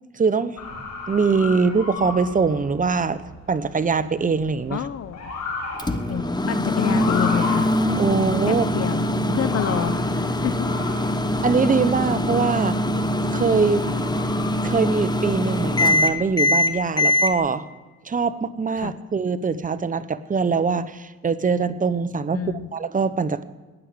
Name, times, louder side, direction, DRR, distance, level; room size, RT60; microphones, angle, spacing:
voice 1, 0.1-0.6 1.1-3.2 3.5-4.8 8.0-8.7 9.1-9.4 11.4-12.8 13.3-13.9 14.6-17.6 18.0-22.4 22.7-23.4, right 5 dB, 25° right, 12 dB, 1.0 m, -22 dB
Motor vehicle (road) / Siren, 0.6-16.1, left 3 dB, 80° left, 6.3 m, -36 dB
voice 2, 4.7-5.3 6.1-7.7 8.5-9.0 9.3-10.7 18.8-18.9 22.3-22.7, left 9 dB, 50° left, 13 dB, 0.7 m, -28 dB
Microwave oven, 5.8-17.3, left 1 dB, 15° left, 1.1 m, -23 dB
19.0 x 6.7 x 8.9 m, 1.3 s
cardioid pair, 90°, 30 cm